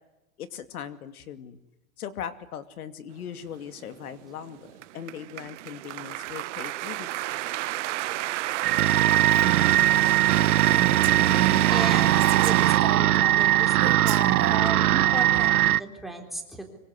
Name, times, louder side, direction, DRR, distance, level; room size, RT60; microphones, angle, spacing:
voice 1, 0.4-1.6 2.0-7.1, left 9 dB, 75° left, 12 dB, 2.6 m, -39 dB
sound 1, 3.5-12.8, right 16 dB, 55° right, 1.1 m, -31 dB
sound 2, 8.6-15.8, right 14 dB, 80° right, 1.0 m, -21 dB
Female speech woman speaking, 9.3-9.9 10.3-10.4 10.7-13.0 13.8-14.7, right 14 dB, 25° right, 2.1 m, -33 dB
voice 2, 11.7-16.6, right 1 dB, ahead, 2 dB, 3.7 m, -35 dB
25.5 x 24.0 x 9.9 m, 0.99 s
supercardioid pair, 160°, 44 cm